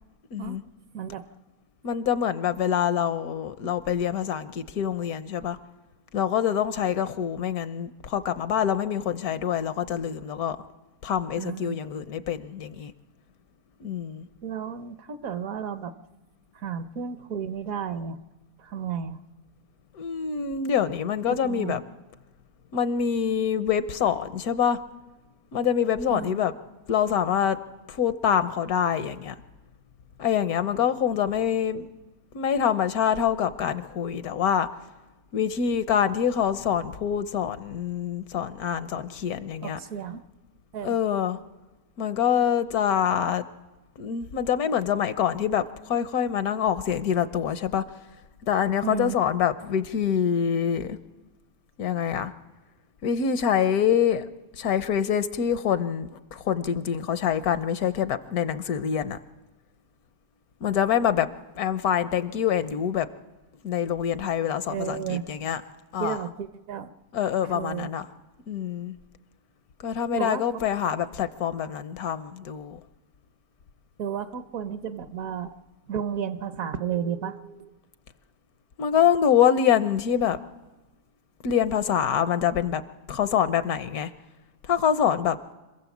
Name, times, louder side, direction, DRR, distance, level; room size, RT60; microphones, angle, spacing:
voice 1, 0.3-0.6 1.8-5.6 6.1-10.6 11.0-12.9 13.8-14.3 20.0-21.8 22.7-24.8 25.5-26.5 26.9-27.6 27.9-29.3 30.2-31.9 32.3-34.7 35.3-39.8 40.8-41.4 42.0-43.4 44.0-47.8 48.4-51.0 51.8-52.3 53.0-54.3 54.5-59.2 60.6-61.3 61.6-63.1 63.6-65.6 65.9-66.2 67.1-68.0 68.5-68.9 69.8-72.8 78.8-80.4 81.4-82.8 83.1-84.1 84.7-85.4, left 8 dB, 80° left, 12 dB, 1.3 m, -25 dB
voice 2, 11.4-11.8 14.4-15.9 16.6-18.2 18.6-19.2 21.3-21.8 26.1-26.4 39.6-40.2 40.7-41.0 48.8-49.1 64.7-65.2 66.0-66.9 67.4-67.9 70.1-70.4 74.0-75.5 75.9-77.7, right 8 dB, 65° right, 11 dB, 1.3 m, -32 dB
26.0 x 15.5 x 7.3 m, 1.2 s
omnidirectional pair, 1.6 m